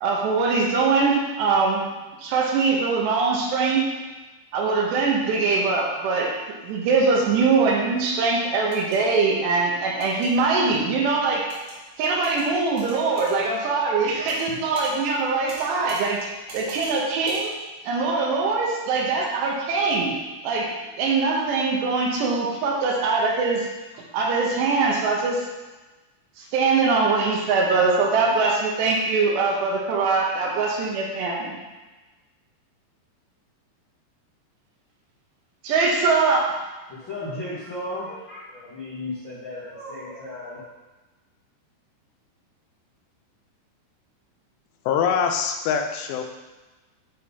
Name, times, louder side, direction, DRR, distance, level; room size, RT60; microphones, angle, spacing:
voice 1, 0.0-1.8 2.2-3.8 4.5-6.3 6.6-11.4 12.0-16.2 16.5-17.5 17.8-20.1 20.4-20.7 21.0-23.7 24.1-25.4 26.4-31.6 35.6-36.4, right 4 dB, 85° right, -2 dB, 3.2 m, -22 dB
sound 1, 8.6-9.0 10.0-10.3 11.5-11.8 12.2-12.5 12.8-13.4 14.3-14.5 14.7-14.9 15.5-16.0 16.5-17.0 17.3-17.4, right 2 dB, 45° right, 2.1 m, -40 dB
voice 2, 36.9-40.6, left 1 dB, 70° left, -10 dB, 1.1 m, -35 dB
voice 3, 44.9-46.2, left 7 dB, 90° left, 5 dB, 2.9 m, -23 dB
10.0 x 3.8 x 4.2 m, 1.2 s
omnidirectional pair, 4.9 m